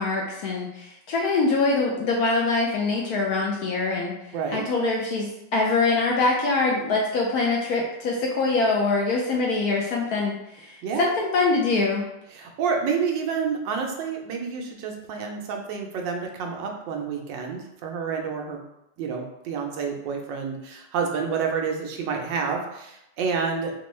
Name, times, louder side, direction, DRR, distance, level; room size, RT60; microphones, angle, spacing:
voice 1, 0.0-12.0, left 3 dB, 70° left, -1 dB, 0.9 m, -24 dB
voice 2, 4.3-4.7 10.8-11.1 12.3-18.6 19.0-23.7, right 5 dB, 80° right, 2 dB, 1.3 m, -29 dB
4.3 x 2.2 x 3.1 m, 0.84 s
omnidirectional pair, 2.0 m